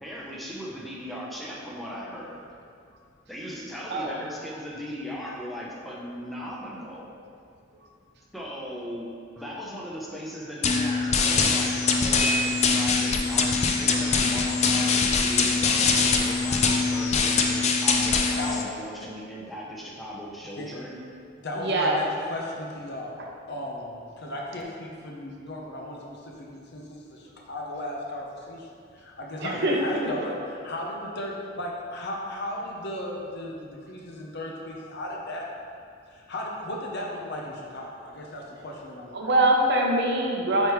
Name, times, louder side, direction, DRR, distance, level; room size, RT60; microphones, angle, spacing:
voice 1, 0.0-2.5 3.3-7.1 8.3-21.0 29.7-30.0, equal, ahead, -4 dB, 0.7 m, -38 dB
voice 2, 3.9-4.2 21.6-22.0 29.4-30.1 39.1-40.7, right 1 dB, 60° right, 0 dB, 0.7 m, -23 dB
sound 1, 10.6-18.6, left 4 dB, 35° left, 0.4 m, -23 dB
voice 3, 21.4-23.2 23.5-28.7 28.9-35.5 36.1-39.3, left 1 dB, 55° left, -1 dB, 0.8 m, -36 dB
9.2 x 3.4 x 3.1 m, 2.3 s
head